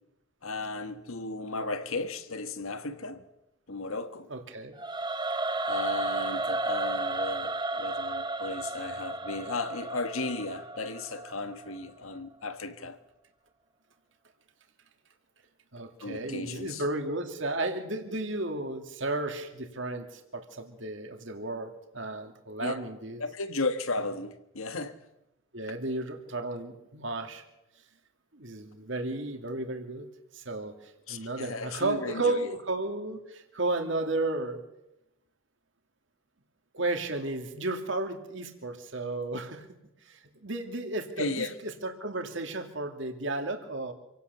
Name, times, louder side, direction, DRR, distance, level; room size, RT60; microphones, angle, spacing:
voice 1, 0.4-3.2 3.7-4.3 5.6-13.0 16.0-16.8 22.6-22.8 23.2-25.0 31.1-32.5 41.2-41.5, left 3 dB, 75° left, 1.7 m, -35 dB
voice 2, 4.3-4.7 15.7-23.2 25.5-27.4 28.3-30.1 30.3-34.6 36.7-39.7 40.1-43.9, right 2 dB, 55° right, 2.5 m, -33 dB
Singing / Musical instrument, 4.8-11.9, right 2 dB, 20° right, 1.1 m, -33 dB
27.0 x 17.5 x 6.9 m
head